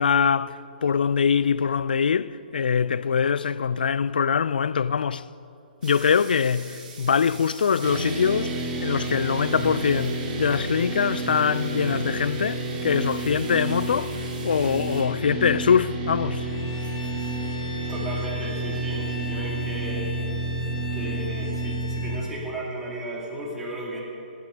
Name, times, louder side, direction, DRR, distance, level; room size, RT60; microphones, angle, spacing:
voice 1, 0.0-5.2 5.8-16.5, left 6 dB, 70° left, 0.3 m, -23 dB
sound 1, 5.8-15.0, right 4 dB, 55° right, 2.3 m, -47 dB
sound 2, 7.8-22.2, right 2 dB, 30° right, 2.0 m, -30 dB
Bowed string instrument, 16.3-22.2, left 2 dB, 10° left, 1.9 m, -41 dB
voice 2, 17.9-20.2 20.9-24.0, right 1 dB, 10° right, 2.3 m, -34 dB
17.0 x 8.4 x 5.2 m
figure-of-eight pair, 130°, 5 cm